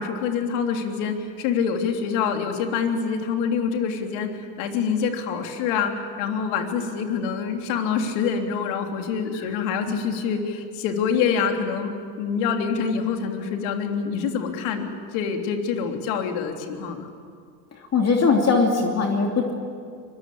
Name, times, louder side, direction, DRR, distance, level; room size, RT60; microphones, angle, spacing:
voice 1, 0.0-17.1, left 6 dB, 65° left, 4 dB, 3.3 m, -26 dB
voice 2, 17.9-19.5, left 4 dB, 30° left, 2 dB, 2.8 m, -21 dB
24.5 x 21.0 x 8.6 m, 2.2 s
supercardioid pair, 100°, 48 cm